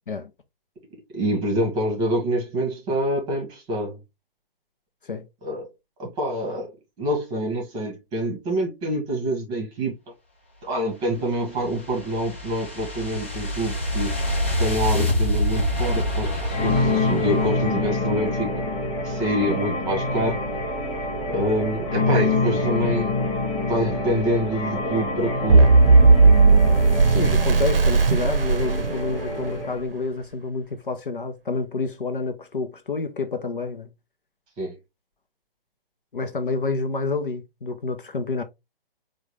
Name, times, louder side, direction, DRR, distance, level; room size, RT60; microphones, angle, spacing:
voice 1, 1.1-4.0 5.4-5.7 6.0-6.7 7.0-9.9 10.6-14.2 14.6-18.5 19.0-20.4 21.3-23.1 23.6-25.7 34.6-34.7, equal, 15° right, 1.5 m, -26 dB
sound 1, 11.1-18.3, left 1 dB, 15° left, 0.4 m, -26 dB
sound 2, 16.5-29.8, left 2 dB, 35° left, 1.8 m, -26 dB
sound 3, 25.5-29.6, right 3 dB, 70° right, 0.6 m, -16 dB
voice 2, 27.1-33.9 36.1-38.4, left 3 dB, 60° left, 0.8 m, -28 dB
4.5 x 2.5 x 3.2 m
figure-of-eight pair, 135°, 29 cm